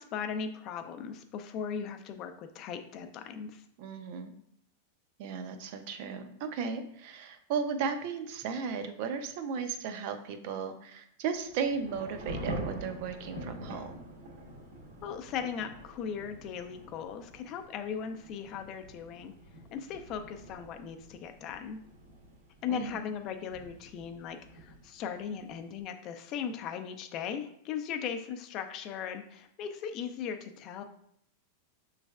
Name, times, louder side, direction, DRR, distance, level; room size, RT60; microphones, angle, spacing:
voice 1, 0.0-3.6 15.0-19.3 19.7-21.8 22.6-30.8, left 7 dB, 40° left, 7 dB, 0.4 m, -38 dB
voice 2, 3.8-4.3 5.2-13.9 22.7-23.0, right 6 dB, 55° right, 8 dB, 0.5 m, -35 dB
Thunder / Rain, 11.3-25.8, right 1 dB, 85° right, 1.2 m, -45 dB
6.1 x 3.2 x 2.3 m, 0.70 s
supercardioid pair, 145°, 0 cm